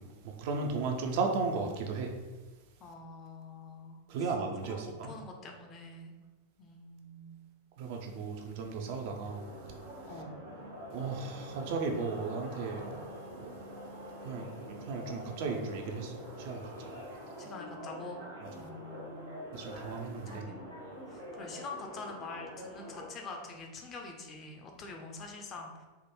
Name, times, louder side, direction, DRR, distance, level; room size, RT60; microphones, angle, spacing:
voice 1, 0.0-2.1 4.1-5.2 7.8-9.5 10.9-13.1 13.4-13.6 14.2-16.9 19.5-20.5, right 4 dB, 50° right, 3 dB, 0.4 m, -35 dB
voice 2, 2.8-4.3 4.6-6.1 6.6-7.5 10.1-10.4 17.4-18.2 18.5-19.3 20.3-20.6 21.1-25.9, left 3 dB, 30° left, 2 dB, 0.5 m, -45 dB
sound 1, 9.2-23.0, equal, 65° right, 1.0 m, -45 dB
3.4 x 2.1 x 2.9 m, 1.2 s
figure-of-eight pair, 90°, 0 cm